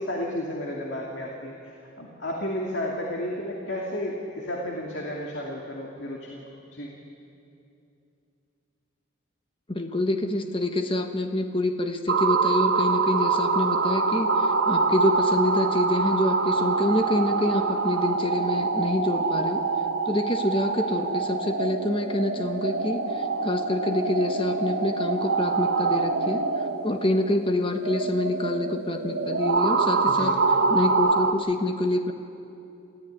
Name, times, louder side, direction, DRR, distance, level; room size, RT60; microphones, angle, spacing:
voice 1, 0.0-1.5 2.0-6.4 6.7-7.0 30.0-30.4, left 1 dB, 60° left, -1 dB, 2.5 m, -32 dB
voice 2, 9.7-19.6 20.1-26.4 26.8-30.4 30.7-32.1, left 1 dB, 25° left, 6 dB, 1.4 m, -26 dB
sound 1, 12.1-31.3, right 4 dB, 80° right, 1.5 m, -25 dB
27.0 x 15.0 x 9.6 m, 2.7 s
head